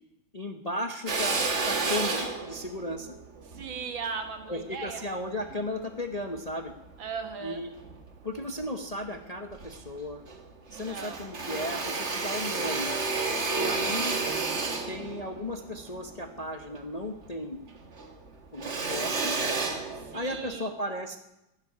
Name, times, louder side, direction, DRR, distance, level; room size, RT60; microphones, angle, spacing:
voice 1, 0.3-3.2 4.5-6.7 7.4-7.7 8.2-10.2 10.7-12.9 13.6-14.1 14.9-17.6 18.5-19.4 20.1-21.2, left 1 dB, 30° left, 6 dB, 0.8 m, -35 dB
Drill, 1.1-5.6 6.2-7.3 7.8-8.7 9.1-9.2 9.5-10.5 10.7-17.4 17.7-20.5, right 3 dB, 35° right, 1.8 m, -32 dB
voice 2, 3.4-5.1 7.0-7.6 10.7-11.2 19.9-20.7, right 5 dB, 85° right, 6 dB, 2.7 m, -38 dB
12.0 x 11.5 x 9.8 m, 0.91 s
omnidirectional pair, 2.1 m